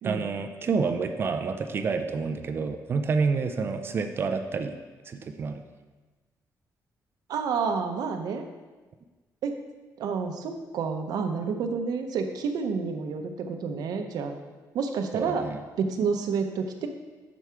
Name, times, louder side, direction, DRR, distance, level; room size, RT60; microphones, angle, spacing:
voice 1, 0.0-4.8 5.1-5.6 15.1-15.6, right 4 dB, 35° right, 7 dB, 0.4 m, -28 dB
voice 2, 7.3-8.5 9.4-9.6 10.0-14.3 14.7-15.4 15.8-16.9, right 5 dB, 75° right, 6 dB, 0.7 m, -29 dB
6.2 x 4.6 x 5.6 m, 1.3 s
cardioid pair, 180°, 7 cm